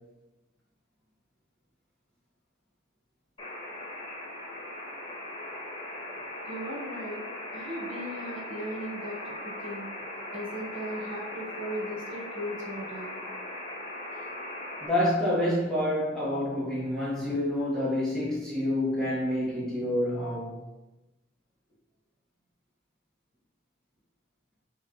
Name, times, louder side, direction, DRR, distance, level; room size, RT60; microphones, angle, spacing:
sound 1, 3.4-14.9, left 1 dB, 25° left, 0.9 m, -39 dB
voice 1, 6.5-7.2 7.5-9.9 10.3-13.2, equal, 65° right, 1.3 m, -37 dB
voice 2, 14.8-20.6, left 1 dB, ahead, 1.2 m, -28 dB
5.5 x 3.0 x 2.4 m
head